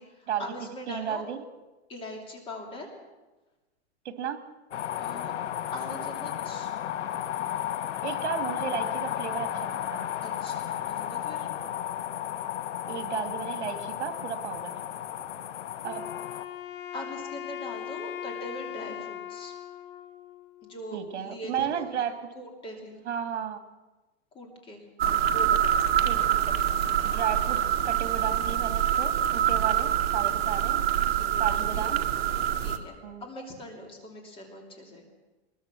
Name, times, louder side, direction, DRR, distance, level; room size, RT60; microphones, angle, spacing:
voice 1, 0.0-1.2 1.9-2.9 5.0-5.3 5.7-6.7 10.2-11.5 16.9-19.5 20.6-22.0 22.3-23.0 24.3-25.7 31.1-32.0 32.6-35.1, left 1 dB, 15° left, 2 dB, 2.9 m, -41 dB
voice 2, 0.9-1.4 4.0-4.4 8.0-10.1 12.9-14.8 15.8-16.1 20.9-22.1 23.0-23.6 26.0-26.5 27.0-30.8 31.4-32.0 33.0-33.2, right 9 dB, 75° right, 8 dB, 2.5 m, -33 dB
sound 1, 4.7-16.4, left 11 dB, 90° left, 1.4 m, -33 dB
Wind instrument woodwind instrument, 15.8-21.0, left 11 dB, 50° left, 1.5 m, -40 dB
sound 2, 25.0-32.8, right 10 dB, 55° right, 1.8 m, -25 dB
22.5 x 21.0 x 6.1 m, 1.1 s
supercardioid pair, 170°, 34 cm